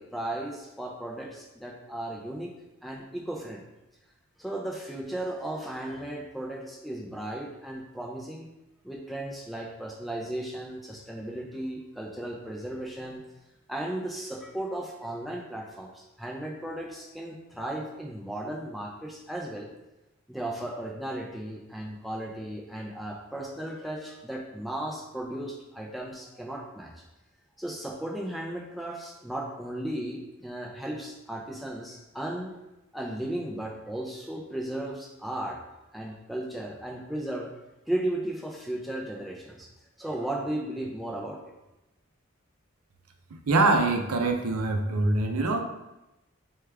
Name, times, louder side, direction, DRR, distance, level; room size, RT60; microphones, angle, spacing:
voice 1, 0.0-2.5 2.8-3.7 4.4-8.5 8.8-13.2 13.7-19.7 20.3-26.9 27.6-32.5 32.9-35.6 35.9-37.5 37.9-39.7 40.0-41.4, right 1 dB, ahead, -2 dB, 0.5 m, -35 dB
voice 2, 43.5-45.6, right 2 dB, 90° right, 4 dB, 0.6 m, -24 dB
6.4 x 2.4 x 3.4 m, 0.97 s
head